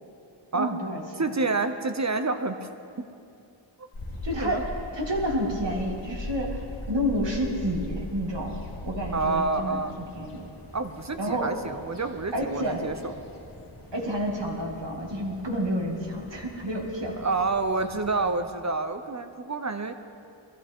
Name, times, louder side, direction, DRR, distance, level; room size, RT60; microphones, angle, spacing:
voice 1, 0.5-1.3 4.2-4.6 4.9-6.6 6.9-8.6 8.8-9.8 10.2-10.4 11.2-11.5 12.3-12.9 13.9-17.2, equal, 60° right, -2 dB, 2.5 m, -29 dB
voice 2, 1.2-2.7 3.0-3.1 4.4-4.6 9.1-9.9 10.7-13.1 17.2-19.9, right 3 dB, 35° right, 8 dB, 0.8 m, -28 dB
sound 1, 3.9-18.4, left 1 dB, 45° left, 2.5 m, -40 dB
21.5 x 14.5 x 3.7 m, 2.6 s
wide cardioid pair, 75°, 48 cm